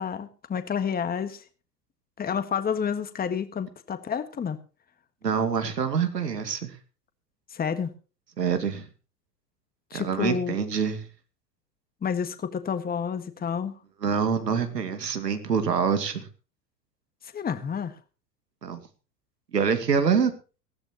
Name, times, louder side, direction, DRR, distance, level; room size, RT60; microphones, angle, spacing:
voice 1, 0.0-1.4 2.2-4.6 7.5-7.9 9.9-10.6 12.0-13.7 17.3-17.9, left 7 dB, 20° left, 10 dB, 1.6 m, -29 dB
voice 2, 5.2-6.7 8.4-8.9 9.9-11.1 14.0-16.3 18.6-18.8 19.5-20.3, right 6 dB, 90° right, 8 dB, 2.4 m, -25 dB
19.5 x 14.0 x 3.0 m, 0.34 s
hypercardioid pair, 95°, 48 cm